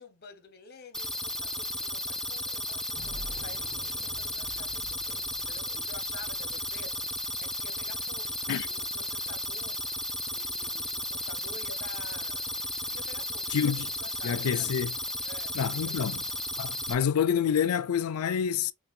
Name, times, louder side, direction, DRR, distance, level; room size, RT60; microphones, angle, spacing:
voice 1, 0.0-9.8 10.3-12.5 12.9-14.7 15.2-15.6 15.9-16.1, left 4 dB, 45° left, 0.9 m, -50 dB
sound 1, 0.9-16.9, left 1 dB, ahead, 0.4 m, -34 dB
sound 2, 2.9-8.5, left 1 dB, 25° left, 1.3 m, -48 dB
voice 2, 13.5-13.9 14.2-14.9 15.5-16.2 16.6-18.7, left 7 dB, 85° left, 0.4 m, -27 dB
5.7 x 2.2 x 2.7 m
head